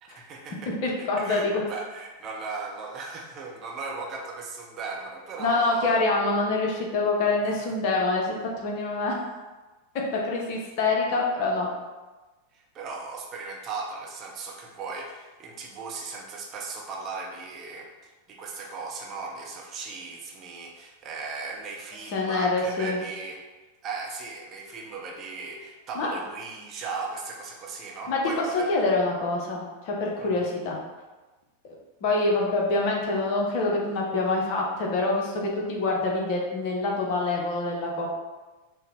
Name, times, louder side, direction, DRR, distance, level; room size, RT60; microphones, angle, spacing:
voice 1, 0.0-6.0 7.5-7.6 12.5-23.4 23.8-28.7 30.2-30.5, right 4 dB, 30° right, -1 dB, 0.7 m, -37 dB
voice 2, 0.8-1.5 5.4-9.2 10.1-11.7 22.1-23.0 25.9-26.1 28.1-28.2 28.5-30.8 31.6-31.7 32.0-38.1, left 3 dB, 45° left, -1 dB, 0.8 m, -26 dB
4.4 x 2.1 x 3.3 m, 1.2 s
figure-of-eight pair, 90°, 0 cm